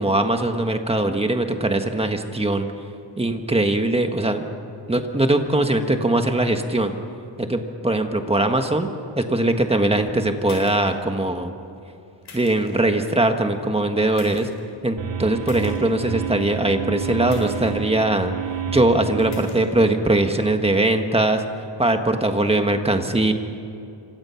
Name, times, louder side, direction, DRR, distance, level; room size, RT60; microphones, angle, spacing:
voice 1, 0.0-2.7 3.2-4.5 4.9-7.0 7.4-8.9 9.2-11.5 12.3-14.5 14.8-18.3 18.7-21.4 21.8-23.3, right 2 dB, 15° right, 6 dB, 1.4 m, -21 dB
sound 1, 10.4-10.9 12.2-12.7 14.1-14.6 15.4-15.7 17.3-17.7 19.2-19.6, left 4 dB, 60° left, 7.8 m, -43 dB
sound 2, 15.0-20.1, right 9 dB, 80° right, 2.0 m, -30 dB
27.0 x 25.5 x 5.8 m, 2.6 s
wide cardioid pair, 160°, 45 cm